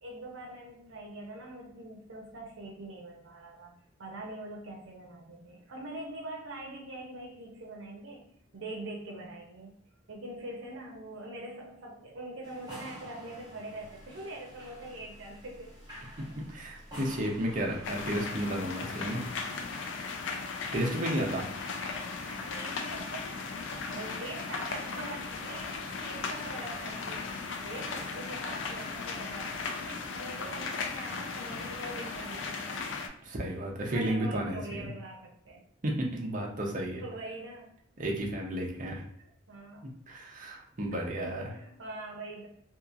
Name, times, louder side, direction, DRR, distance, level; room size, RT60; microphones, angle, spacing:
voice 1, 0.0-3.7 4.0-9.7 10.1-15.7 16.1-16.4 22.2-23.6 23.9-32.9 33.9-35.6 36.2-36.5 37.0-37.7 39.2-39.8 40.9-42.5, right 2 dB, 85° right, -1 dB, 0.6 m, -43 dB
sound 1, 12.4-18.2, equal, 20° right, 1.1 m, -48 dB
voice 2, 16.2-19.2 20.7-21.4 33.2-34.9 35.8-37.0 38.0-39.0 39.8-41.4, right 1 dB, 45° right, -1 dB, 0.6 m, -32 dB
sound 2, 17.8-33.1, left 4 dB, 80° left, 0.4 m, -37 dB
2.8 x 2.4 x 2.4 m, 0.71 s
head